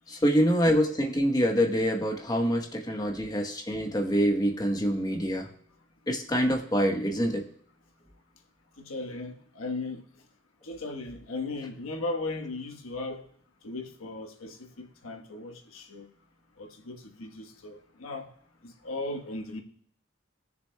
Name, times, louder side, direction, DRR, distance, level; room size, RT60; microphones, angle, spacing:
voice 1, 0.1-5.5 6.1-7.4, equal, 20° left, 1.1 m, -25 dB
voice 2, 8.8-10.0 10.6-13.2 13.6-16.1 16.6-18.3 18.6-19.6, left 2 dB, 85° left, 1.2 m, -37 dB
20.0 x 6.9 x 2.2 m
head